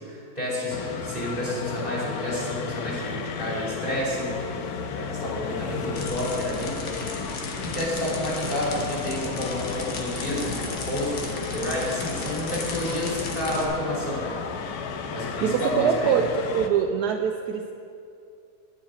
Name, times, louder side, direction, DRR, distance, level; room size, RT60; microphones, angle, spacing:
voice 1, 0.1-6.8 7.6-14.4 15.1-16.2, left 1 dB, 20° left, -6 dB, 3.2 m, -30 dB
sound 1, 0.7-16.7, left 6 dB, 70° left, 1.2 m, -34 dB
sound 2, 5.9-13.6, left 3 dB, 85° left, 1.8 m, -34 dB
voice 2, 15.4-17.7, right 7 dB, 75° right, 3 dB, 1.1 m, -24 dB
10.0 x 9.7 x 5.2 m, 2.5 s
omnidirectional pair, 1.8 m